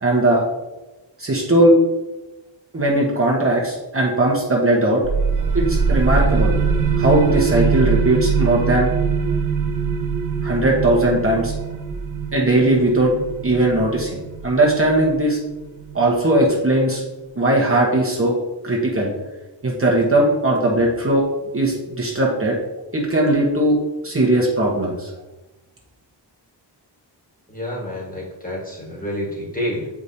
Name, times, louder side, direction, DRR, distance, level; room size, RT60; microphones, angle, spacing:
voice 1, 0.0-0.4 1.2-1.7 2.7-5.0 5.5-6.5 7.0-8.9 10.4-11.5 12.3-13.1 13.4-15.4 15.9-17.0 17.4-18.3 18.6-19.1 19.6-21.2 21.5-22.6 22.9-23.8 24.0-25.1, right 1 dB, 30° right, -2 dB, 1.1 m, -18 dB
sound 1, 5.0-16.4, right 5 dB, 45° right, 0.6 m, -22 dB
voice 2, 27.5-29.9, left 1 dB, 20° left, -3 dB, 1.6 m, -28 dB
7.2 x 4.8 x 2.8 m, 1.1 s
wide cardioid pair, 125°, 43 cm